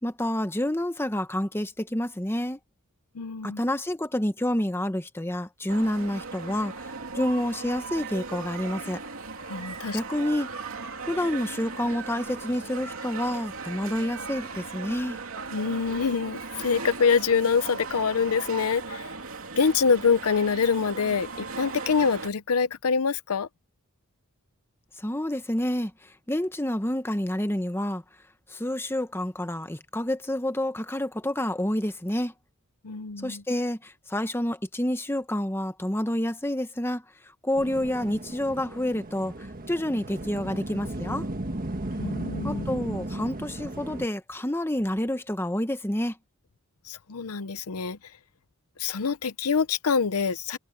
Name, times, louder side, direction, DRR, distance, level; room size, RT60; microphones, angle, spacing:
voice 1, 0.0-2.6 3.4-9.0 9.9-10.5 11.0-15.2 25.0-28.0 28.5-32.3 33.2-37.0 37.4-39.3 39.7-41.3 42.4-46.2, left 1 dB, 10° left, 1.1 m, -28 dB
voice 2, 3.1-3.6 9.5-10.0 15.5-19.1 19.6-23.5 32.8-33.4 42.0-42.7 46.9-48.0 48.8-50.6, left 5 dB, 75° left, 0.7 m, -25 dB
sound 1, 5.7-22.3, right 4 dB, 65° right, 3.3 m, -38 dB
sound 2, 37.5-44.1, right 1 dB, 40° right, 1.6 m, -35 dB
head